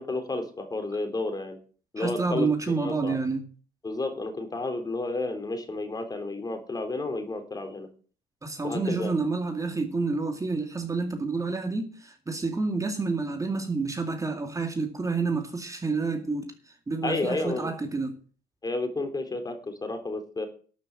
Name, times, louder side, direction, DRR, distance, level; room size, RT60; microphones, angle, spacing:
voice 1, 0.0-1.6 1.9-2.5 2.8-3.2 3.8-7.9 8.6-9.2 17.0-17.8 18.6-20.5, left 2 dB, 25° left, 3.4 m, -31 dB
voice 2, 2.0-3.4 8.4-18.1, right 3 dB, 20° right, 2.2 m, -29 dB
12.5 x 6.7 x 8.8 m
cardioid pair, 110°, 17 cm